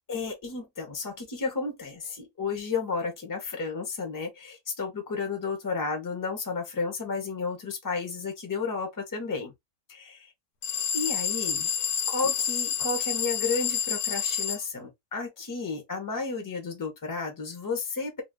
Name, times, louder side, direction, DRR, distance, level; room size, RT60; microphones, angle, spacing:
voice 1, 0.1-9.5 9.9-10.3 10.9-11.7 12.1-18.2, left 4 dB, 15° left, 0.7 m, -32 dB
sound 1, 10.6-14.6, left 8 dB, 80° left, 1.1 m, -29 dB
2.6 x 2.4 x 3.6 m
omnidirectional pair, 1.6 m